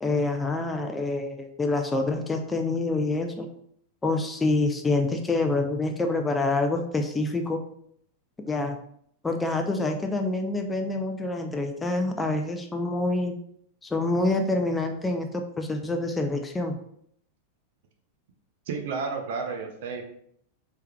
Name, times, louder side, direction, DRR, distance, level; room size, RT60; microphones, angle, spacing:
voice 1, 0.0-3.5 4.0-7.6 8.5-8.8 9.2-13.4 13.8-16.8, left 2 dB, 10° left, 4 dB, 0.4 m, -26 dB
voice 2, 18.7-20.0, right 5 dB, 55° right, 4 dB, 0.7 m, -31 dB
4.4 x 3.4 x 2.2 m, 0.67 s
figure-of-eight pair, 90°, 0 cm